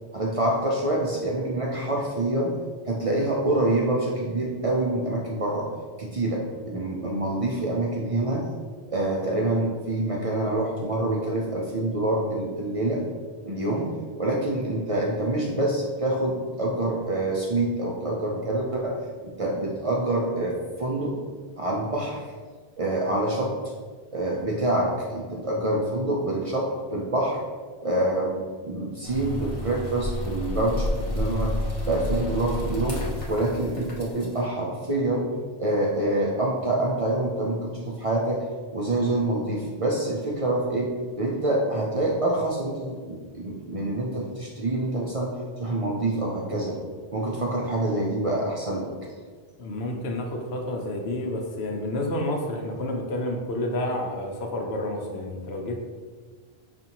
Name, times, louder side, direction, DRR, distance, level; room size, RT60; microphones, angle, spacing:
voice 1, 0.1-2.5 2.8-5.7 6.0-8.5 8.9-13.0 13.4-19.0 19.2-21.1 21.6-22.2 22.8-23.5 24.1-27.4 27.8-31.6 31.8-35.3 35.6-38.4 38.7-46.8 47.1-48.9, right 1 dB, 50° right, -2 dB, 0.4 m, -26 dB
sound 1, 29.0-34.4, left 1 dB, 35° left, 0.8 m, -30 dB
voice 2, 49.6-55.8, left 1 dB, 80° left, 1 dB, 0.9 m, -29 dB
5.3 x 2.5 x 2.8 m, 1.5 s
omnidirectional pair, 1.0 m